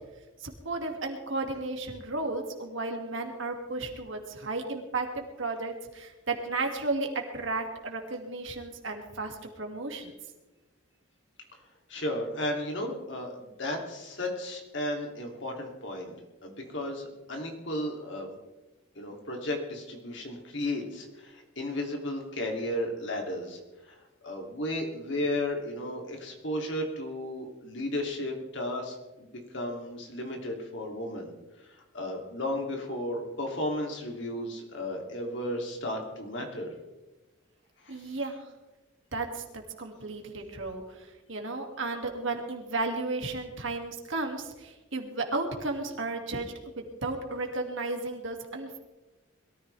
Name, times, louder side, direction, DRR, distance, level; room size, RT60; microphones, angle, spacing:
voice 1, 0.4-10.2 37.9-38.5 39.1-48.8, right 3 dB, 65° right, 3 dB, 2.4 m, -34 dB
voice 2, 11.9-16.1 16.4-18.3 19.0-23.6 23.9-24.0 24.2-31.3 31.9-36.7 37.8-38.0, left 1 dB, 60° left, 1 dB, 3.0 m, -34 dB
22.0 x 14.0 x 3.5 m, 1.1 s
head